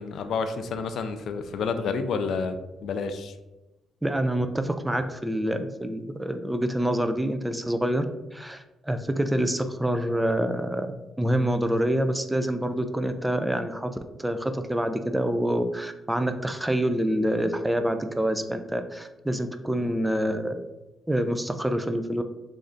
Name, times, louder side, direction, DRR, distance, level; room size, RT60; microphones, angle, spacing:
voice 1, 0.0-3.3, left 5 dB, 65° left, 8 dB, 0.3 m, -29 dB
voice 2, 4.0-8.0 8.3-10.9 11.2-13.9 14.2-20.6 21.1-22.2, right 1 dB, 10° right, 8 dB, 0.3 m, -26 dB
3.1 x 2.5 x 3.8 m, 0.99 s
cardioid pair, 90°, 0 cm